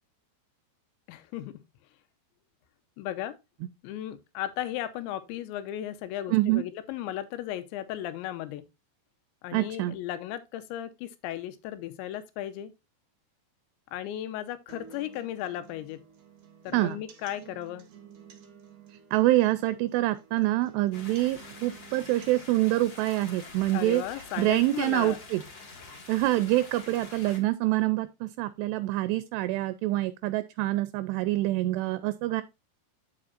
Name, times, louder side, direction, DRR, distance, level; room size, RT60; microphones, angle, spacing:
voice 1, 1.1-1.6 3.0-3.4 3.8-8.6 9.4-12.7 13.9-16.0 16.6-17.9 23.7-25.2, left 12 dB, 85° left, 3.2 m, -35 dB
voice 2, 6.3-6.6 9.5-10.0 16.7-17.0 19.1-24.0 24.4-25.4 26.1-32.4, right 17 dB, 80° right, 2.6 m, -26 dB
sound 1, 14.7-22.7, right 8 dB, 60° right, 1.6 m, -52 dB
sound 2, 20.9-27.4, left 3 dB, 40° left, 1.8 m, -47 dB
9.9 x 6.9 x 2.5 m
omnidirectional pair, 5.1 m